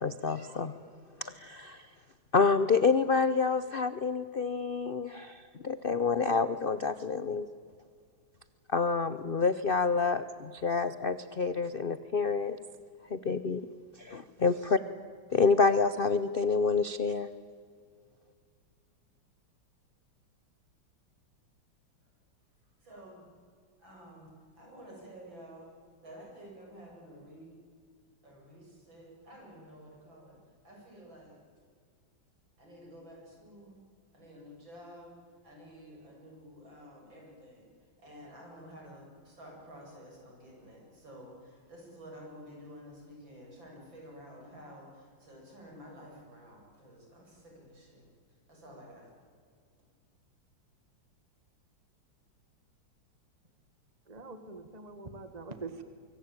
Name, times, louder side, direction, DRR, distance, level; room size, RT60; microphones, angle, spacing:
voice 1, 0.0-0.7 1.2-1.9 2.3-7.5 8.7-12.6 13.1-13.6 14.0-14.8 15.3-17.3, left 4 dB, 65° left, 13 dB, 0.5 m, -28 dB
voice 2, 22.8-23.3 23.8-25.7 26.0-27.5 28.2-30.4 30.6-31.4 32.6-33.8 34.1-35.2 35.4-37.7 38.0-48.1 48.5-49.1, equal, 65° right, -1 dB, 8.3 m, -51 dB
voice 3, 54.1-55.8, right 3 dB, 20° right, 9 dB, 1.6 m, -43 dB
24.5 x 24.5 x 9.0 m, 2.1 s
omnidirectional pair, 2.2 m